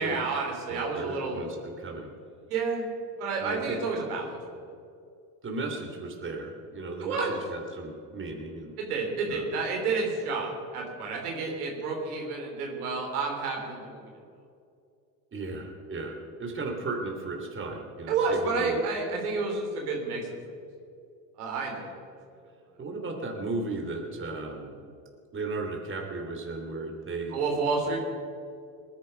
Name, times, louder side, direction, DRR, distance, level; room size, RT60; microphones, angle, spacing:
voice 1, 0.0-1.5 2.5-2.9 3.2-4.7 7.0-7.4 8.8-14.0 18.1-20.4 21.4-21.9 27.3-28.0, right 4 dB, 90° right, 0 dB, 3.6 m, -30 dB
voice 2, 0.7-2.1 3.4-3.8 5.4-8.8 9.3-9.5 15.3-18.8 22.8-24.7 25.3-27.4, right 3 dB, 25° right, 1 dB, 3.1 m, -35 dB
20.0 x 10.5 x 5.7 m, 2.4 s
supercardioid pair, 90°, 44 cm